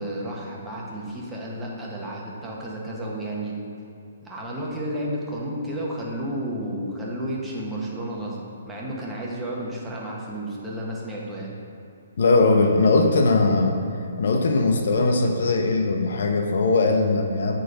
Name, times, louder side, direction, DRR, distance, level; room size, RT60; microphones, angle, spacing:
voice 1, 0.0-3.5 4.2-8.4 8.6-11.5, right 1 dB, 10° right, -5 dB, 1.4 m, -32 dB
voice 2, 12.2-13.8 14.2-17.6, left 3 dB, 65° left, 4 dB, 0.7 m, -20 dB
9.3 x 3.9 x 5.2 m, 2.5 s
figure-of-eight pair, 135°, 0 cm